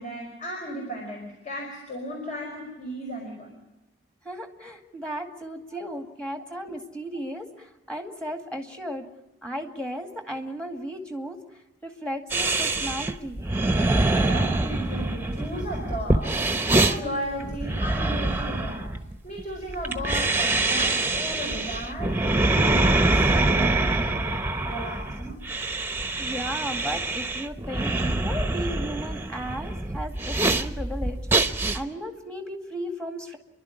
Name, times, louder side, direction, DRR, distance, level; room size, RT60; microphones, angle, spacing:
voice 1, 0.0-3.5 5.7-5.8 14.2-18.9 19.2-24.3 24.6-25.4, equal, 45° left, 0 dB, 5.1 m, -35 dB
voice 2, 4.2-9.0 9.4-11.4 11.8-13.5 26.2-31.2 31.7-33.4, equal, 5° left, 4 dB, 2.2 m, -35 dB
My breath and sniffs, 12.3-31.8, right 2 dB, 10° right, 1.0 m, -25 dB
29.5 x 12.0 x 9.9 m, 0.99 s
head